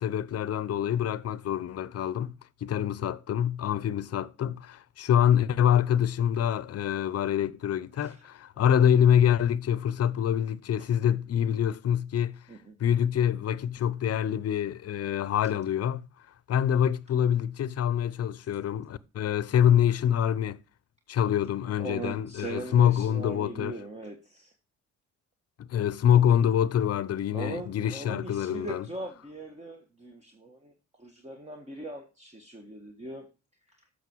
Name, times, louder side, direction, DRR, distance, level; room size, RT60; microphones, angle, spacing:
voice 1, 0.0-2.3 2.6-12.4 12.8-16.0 16.5-20.6 21.1-23.7 25.6-28.9, left 9 dB, 55° left, 0.7 m, -25 dB
voice 2, 21.7-24.5 27.3-33.3 33.7-33.8, right 2 dB, 20° right, 1.6 m, -40 dB
8.1 x 6.3 x 4.6 m
cardioid pair, 90°, 30 cm